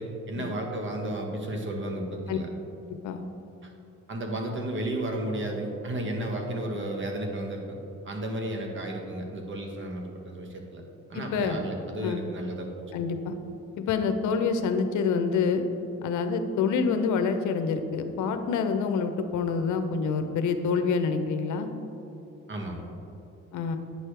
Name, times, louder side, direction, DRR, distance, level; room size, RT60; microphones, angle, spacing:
voice 1, 0.0-2.5 4.1-7.8 8.0-10.8 11.1-13.0 22.5-22.9, right 1 dB, 40° right, 1 dB, 1.4 m, -33 dB
voice 2, 11.1-11.6 12.0-12.3 12.9-13.4 13.8-15.6 16.0-21.7 23.5-23.8, left 5 dB, 80° left, 8 dB, 0.7 m, -27 dB
9.4 x 6.3 x 3.3 m, 2.9 s
cardioid pair, 90°, 30 cm